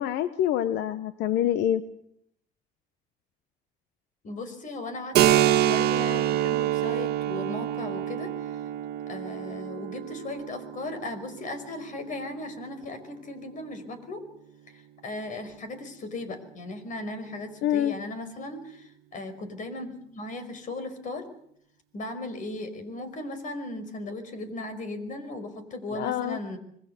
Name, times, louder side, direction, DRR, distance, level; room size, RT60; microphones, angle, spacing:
voice 1, 0.0-1.8 17.6-17.9 25.9-26.4, left 11 dB, 85° left, 13 dB, 1.0 m, -26 dB
voice 2, 4.2-8.3 9.1-14.2 14.7-21.3 21.9-26.6, left 2 dB, 50° left, 11 dB, 5.3 m, -37 dB
Keyboard (musical), 5.1-12.5, right 12 dB, 70° right, 1.5 m, -27 dB
26.5 x 21.0 x 6.9 m, 0.71 s
cardioid pair, 110°, 17 cm